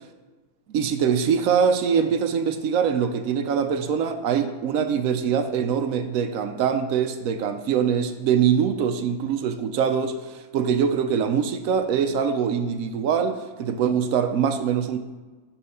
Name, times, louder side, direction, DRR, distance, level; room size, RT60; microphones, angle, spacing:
voice 1, 0.7-15.0, right 7 dB, 70° right, 8 dB, 0.9 m, -23 dB
6.3 x 4.3 x 5.4 m, 1.3 s
omnidirectional pair, 1.7 m